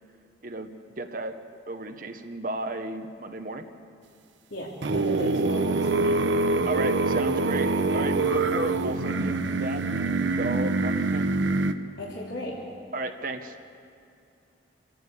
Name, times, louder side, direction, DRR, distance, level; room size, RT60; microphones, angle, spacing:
voice 1, 1.0-1.3 1.7-3.6 6.7-11.2 12.9-13.6, right 2 dB, 45° right, 6 dB, 0.9 m, -34 dB
voice 2, 4.5-6.2 12.0-12.6, left 1 dB, 80° left, -7 dB, 3.3 m, -36 dB
sound 1, 4.8-11.7, right 3 dB, 75° right, 0.8 m, -25 dB
27.5 x 11.5 x 8.3 m, 2.6 s
head